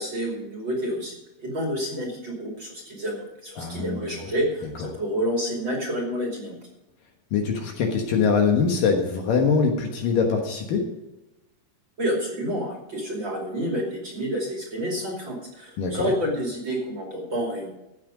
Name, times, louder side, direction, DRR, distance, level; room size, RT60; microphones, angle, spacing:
voice 1, 0.0-6.6 12.0-17.7, equal, 35° right, -1 dB, 2.8 m, -29 dB
voice 2, 3.6-4.2 7.3-10.8 15.8-16.1, left 5 dB, 65° left, 2 dB, 2.7 m, -23 dB
15.0 x 8.5 x 5.1 m, 0.98 s
omnidirectional pair, 4.7 m